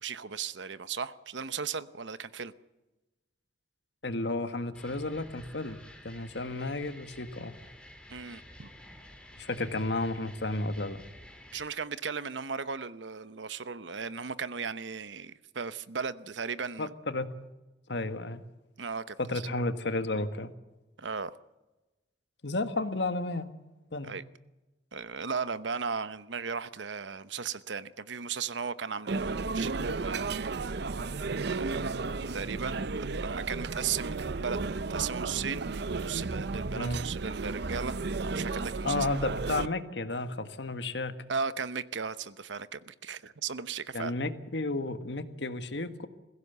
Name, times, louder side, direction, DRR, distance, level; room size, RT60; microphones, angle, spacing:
voice 1, 0.0-2.5 8.1-8.7 11.5-16.9 18.8-19.5 21.0-21.4 24.0-24.2 24.9-30.7 31.2-32.0 32.3-39.1 41.3-44.1, right 6 dB, 90° right, 1.0 m, -36 dB
voice 2, 4.0-5.8 6.0-7.5 9.4-11.0 16.8-17.3 17.9-18.4 19.2-20.5 22.4-23.5 23.9-24.1 36.7-37.0 38.8-41.1 43.9-46.1, left 2 dB, 70° left, 1.5 m, -32 dB
sound 1, 4.7-11.7, left 1 dB, 5° left, 3.1 m, -51 dB
sound 2, 29.1-39.7, right 3 dB, 65° right, 0.7 m, -33 dB
21.5 x 16.0 x 8.2 m
head